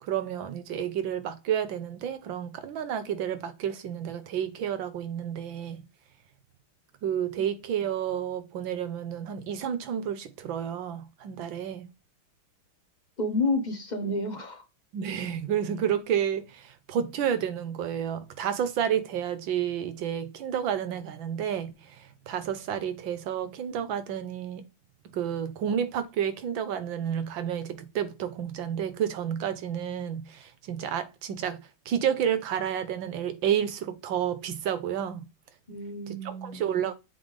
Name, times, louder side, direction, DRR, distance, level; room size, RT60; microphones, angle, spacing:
voice 1, 0.0-5.8 7.0-11.9 14.9-24.6 25.1-35.3 36.1-36.9, right 9 dB, 75° right, 1.6 m, -30 dB
voice 2, 13.2-14.6 35.7-36.6, left 2 dB, 35° left, 0.8 m, -30 dB
7.7 x 3.4 x 3.5 m
omnidirectional pair, 2.2 m